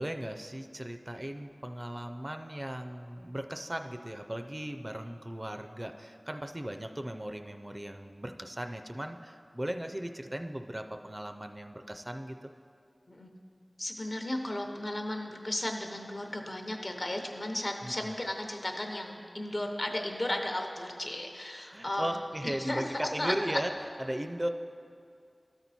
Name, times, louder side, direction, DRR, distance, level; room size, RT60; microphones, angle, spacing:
voice 1, 0.0-12.4 17.8-18.1 21.7-23.7 24.0-24.5, right 1 dB, 30° right, 6 dB, 0.4 m, -37 dB
voice 2, 13.8-23.6, left 1 dB, 55° left, 3 dB, 0.8 m, -35 dB
12.5 x 4.4 x 4.1 m, 2.4 s
wide cardioid pair, 50°, 0 cm